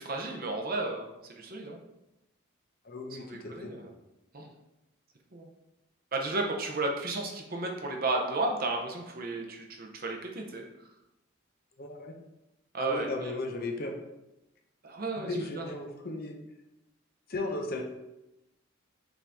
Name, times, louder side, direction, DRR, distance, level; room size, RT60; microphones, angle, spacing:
voice 1, 0.0-1.8 3.2-3.9 4.3-4.5 5.3-5.5 6.1-10.6 12.7-13.3 14.8-15.3 15.6-15.7, right 2 dB, 45° right, 2 dB, 0.6 m, -33 dB
voice 2, 2.8-3.7 11.8-12.1 12.8-13.9 15.2-16.4 17.3-17.8, left 2 dB, 45° left, 3 dB, 0.6 m, -35 dB
5.9 x 2.6 x 3.4 m, 0.93 s
head